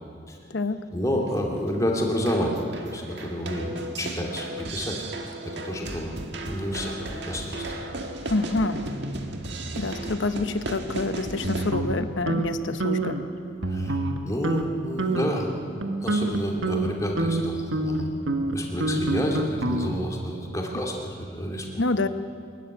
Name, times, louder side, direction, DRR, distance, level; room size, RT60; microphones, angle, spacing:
voice 1, 0.9-5.0 5.4-7.6 13.7-14.0 14.2-15.5 16.0-18.1 18.5-21.8, equal, 15° left, 0 dB, 2.6 m, -29 dB
sound 1, 1.2-11.7, right 2 dB, 60° right, 1.8 m, -35 dB
voice 2, 8.3-8.8 9.7-13.2 21.8-22.1, left 2 dB, 75° left, 11 dB, 1.0 m, -27 dB
sound 2, 11.4-12.5 12.8-13.2 13.6-14.2 14.4-14.7 15.0-15.4 15.8-20.2, right 2 dB, 80° right, 1.7 m, -27 dB
23.5 x 14.0 x 9.9 m, 2.4 s
head